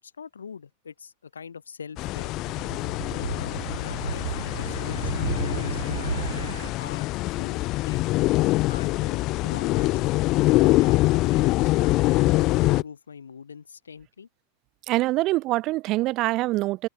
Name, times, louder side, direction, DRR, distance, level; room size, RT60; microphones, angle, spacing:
voice 1, 0.0-2.3 3.1-6.5 6.8-7.1 7.4-7.6 7.9-8.0 8.7-10.1 10.5-12.2 12.6-14.3, left 6 dB, 70° left, 8.0 m, -43 dB
sound 1, 2.0-12.8, left 19 dB, 40° left, 0.3 m, -24 dB
sound 2, 2.3-6.7, right 7 dB, 70° right, 0.8 m, -33 dB
voice 2, 14.9-16.9, right 19 dB, 40° right, 0.5 m, -24 dB
figure-of-eight pair, 90°, 0 cm